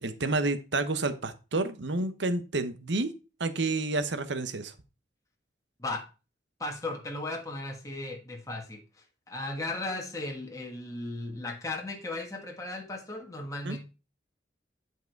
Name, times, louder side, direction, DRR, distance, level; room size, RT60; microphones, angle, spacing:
voice 1, 0.0-3.1 3.4-4.7 13.6-13.8, right 2 dB, 75° right, 11 dB, 1.0 m, -29 dB
voice 2, 6.6-8.8 9.3-13.8, left 2 dB, 15° left, 1 dB, 1.4 m, -36 dB
11.0 x 4.8 x 4.6 m, 0.32 s
head